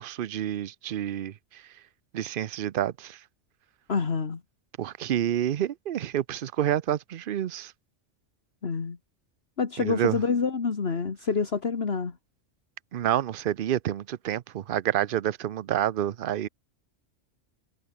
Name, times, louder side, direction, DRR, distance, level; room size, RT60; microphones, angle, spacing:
voice 1, 0.0-1.6 2.1-3.2 4.8-7.7 9.8-10.2 12.9-16.5, right 11 dB, 55° right, 0.7 m, -28 dB
voice 2, 3.9-4.4 8.6-9.0 9.6-12.2, left 5 dB, 55° left, 1.9 m, -27 dB
omnidirectional pair, 1.3 m